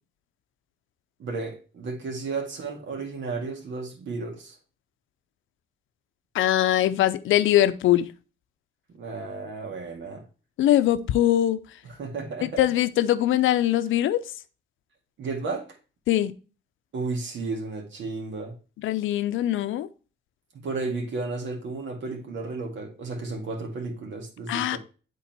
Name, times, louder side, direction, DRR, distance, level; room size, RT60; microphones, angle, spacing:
voice 1, 1.2-4.6 9.0-10.2 11.8-12.7 15.2-15.7 16.9-18.5 20.6-24.8, right 3 dB, 70° right, 2.1 m, -33 dB
voice 2, 6.3-8.1 10.6-11.6 12.4-14.2 16.1-16.3 18.8-19.9 24.5-24.8, left 13 dB, 80° left, 0.6 m, -22 dB
8.4 x 3.9 x 4.4 m
cardioid pair, 90°, 20 cm